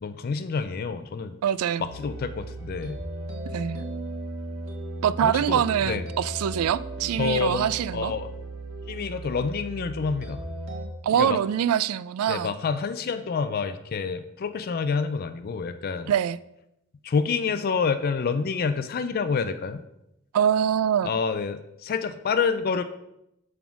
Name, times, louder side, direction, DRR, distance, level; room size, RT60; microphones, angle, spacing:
voice 1, 0.0-1.4 1.8-3.0 5.2-6.0 7.2-8.3 8.9-10.4 11.1-11.4 12.3-16.1 17.0-19.8 21.0-22.8, left 5 dB, 45° left, 0.4 m, -28 dB
voice 2, 1.4-1.9 3.5-3.8 5.0-8.1 11.0-12.5 16.1-16.4 20.3-21.1, right 9 dB, 90° right, 0.3 m, -24 dB
sound 1, 1.8-10.9, right 1 dB, 65° right, 1.6 m, -36 dB
7.1 x 3.6 x 5.9 m
head